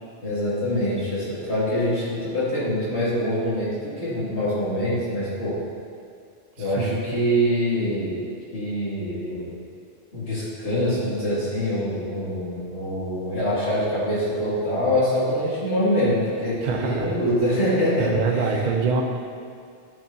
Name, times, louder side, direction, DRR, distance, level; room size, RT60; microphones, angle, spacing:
voice 1, 0.2-5.6 6.6-8.2 8.5-9.5 10.1-18.7, equal, 75° left, -9 dB, 2.4 m, -24 dB
voice 2, 16.6-17.1 18.0-19.0, right 5 dB, 50° right, 1 dB, 0.6 m, -24 dB
10.5 x 5.6 x 2.7 m, 2.3 s
omnidirectional pair, 1.2 m